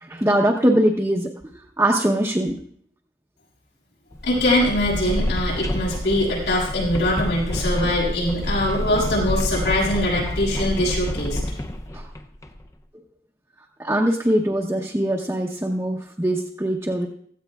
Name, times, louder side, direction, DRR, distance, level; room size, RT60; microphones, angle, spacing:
voice 1, 0.0-1.3 1.8-2.6 11.9-12.1 13.8-17.1, right 1 dB, 15° right, -1 dB, 0.8 m, -22 dB
sound 1, 4.1-12.6, left 1 dB, 15° left, 0.5 m, -28 dB
voice 2, 4.2-11.4, left 1 dB, 85° left, -5 dB, 6.7 m, -22 dB
17.0 x 14.0 x 2.4 m, 0.63 s
head